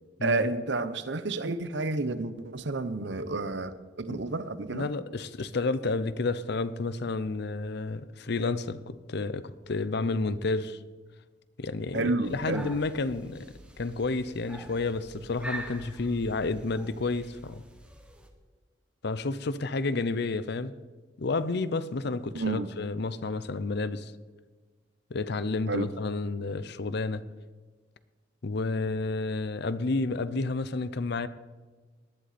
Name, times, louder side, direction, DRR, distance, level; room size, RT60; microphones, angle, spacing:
voice 1, 0.2-4.9 11.9-12.7 22.3-22.7 25.7-25.9, right 3 dB, 70° right, 0.9 m, -30 dB
voice 2, 4.7-10.8 11.6-13.5 13.8-17.6 19.0-20.7 21.2-24.1 25.1-27.2 28.4-31.3, left 3 dB, 60° left, 0.7 m, -30 dB
sound 1, 12.2-18.3, right 1 dB, 5° right, 1.4 m, -45 dB
19.0 x 11.5 x 4.2 m
head